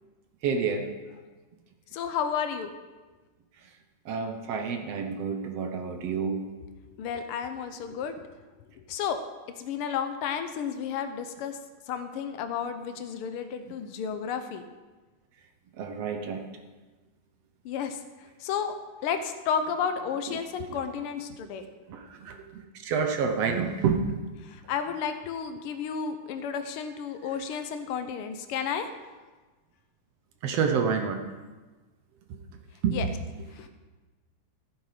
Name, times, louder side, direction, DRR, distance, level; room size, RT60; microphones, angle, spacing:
voice 1, 0.4-0.9 4.1-6.4 15.8-16.4 21.9-24.1 30.4-31.2 32.3-32.4 32.8-33.0, right 6 dB, 65° right, 5 dB, 1.8 m, -28 dB
voice 2, 1.9-2.7 7.0-8.3 8.9-9.2 9.6-11.6 11.9-14.6 17.6-18.0 18.4-18.7 19.0-21.7 24.4-28.9 32.9-33.1 33.5-33.7, left 7 dB, 85° left, 8 dB, 1.2 m, -32 dB
15.5 x 9.0 x 5.0 m, 1.3 s
omnidirectional pair, 3.4 m